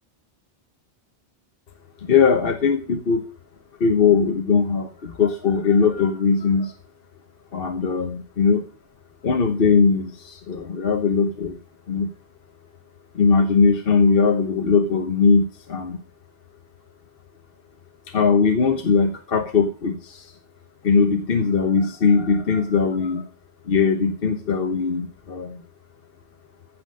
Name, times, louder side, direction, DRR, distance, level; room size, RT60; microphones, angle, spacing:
voice 1, 2.1-3.2 3.8-6.7 7.5-8.6 9.2-11.6 11.9-12.1 13.1-16.0 18.1-20.3 20.8-23.3 23.7-25.6, left 5 dB, 55° left, 5 dB, 1.3 m, -20 dB
14.5 x 6.0 x 6.4 m, 0.37 s
omnidirectional pair, 1.2 m